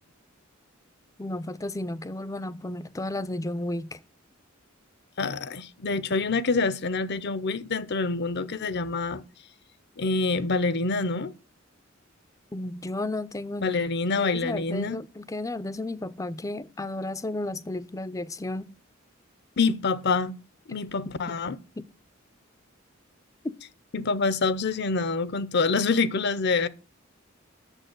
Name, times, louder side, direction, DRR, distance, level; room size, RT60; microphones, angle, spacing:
voice 1, 1.2-4.0 12.5-13.8 14.2-18.7 21.1-21.2 21.8-21.9 23.4-23.6, left 2 dB, 15° left, 0.5 m, -33 dB
voice 2, 5.2-9.2 10.0-11.3 13.6-15.0 19.6-20.4 20.7-21.6 23.9-26.7, left 4 dB, 55° left, 0.7 m, -26 dB
9.0 x 7.0 x 8.0 m
head